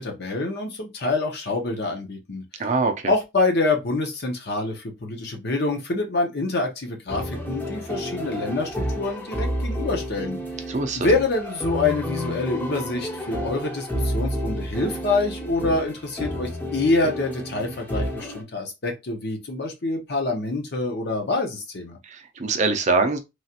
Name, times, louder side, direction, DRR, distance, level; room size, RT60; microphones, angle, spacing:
voice 1, 0.0-2.6 3.1-10.4 10.9-22.0, left 3 dB, 55° left, 0.8 m, -26 dB
voice 2, 2.6-3.1 10.7-11.1 22.0-23.2, right 3 dB, 35° right, 0.5 m, -23 dB
sound 1, 7.1-18.4, equal, 10° left, 0.6 m, -30 dB
3.2 x 2.4 x 2.7 m
head